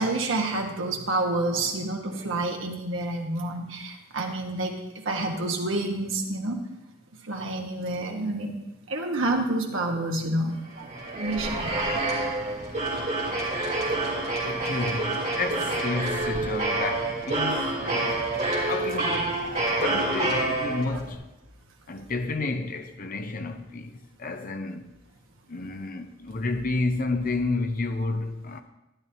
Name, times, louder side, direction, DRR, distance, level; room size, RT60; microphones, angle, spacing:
voice 1, 0.0-4.7 5.0-6.6 7.3-8.5 8.9-10.5 10.8-10.9 11.1-12.0 19.6-19.8, right 2 dB, 65° right, 1.4 m, -28 dB
sound 1, 10.7-21.1, right 2 dB, 35° right, 2.6 m, -28 dB
voice 2, 14.4-18.4 18.7-19.4 19.8-21.3 21.9-24.9 25.5-28.6, left 3 dB, 40° left, 0.7 m, -31 dB
12.0 x 10.5 x 2.9 m
head